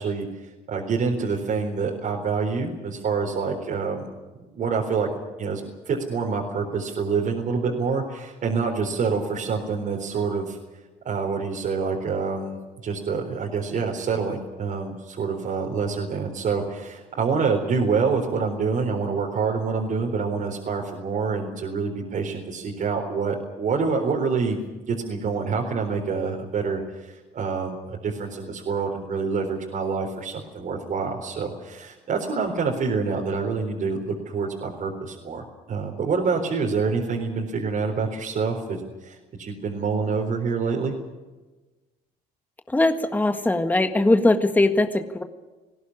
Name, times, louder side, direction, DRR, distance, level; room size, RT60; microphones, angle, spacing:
voice 1, 0.0-4.1 4.5-5.1 5.4-10.6 11.0-24.6 24.9-40.9, right 5 dB, 50° right, -1 dB, 4.3 m, -27 dB
voice 2, 42.7-45.2, left 2 dB, 10° left, 7 dB, 1.7 m, -20 dB
20.5 x 17.0 x 9.8 m, 1.2 s
cardioid pair, 110°, 17 cm